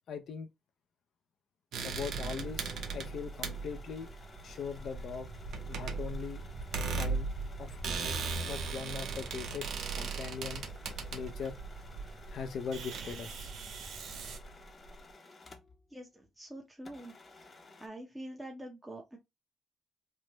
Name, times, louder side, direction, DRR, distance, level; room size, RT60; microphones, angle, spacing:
voice 1, 0.1-0.5 1.8-4.1 4.4-5.3 5.7-6.4 6.9-7.3 7.6-10.7 11.1-11.6 12.3-13.5, left 6 dB, 65° left, 0.4 m, -41 dB
sound 1, 1.7-14.4, right 4 dB, 70° right, 0.6 m, -38 dB
sound 2, 2.2-15.9 16.2-16.3 16.8-17.9, left 3 dB, 35° left, 0.7 m, -55 dB
sound 3, 4.3-15.1, right 3 dB, 50° right, 1.0 m, -48 dB
voice 2, 15.9-17.1 17.8-19.2, right 1 dB, 10° right, 0.7 m, -45 dB
3.2 x 2.1 x 3.0 m
cardioid pair, 90°, 0 cm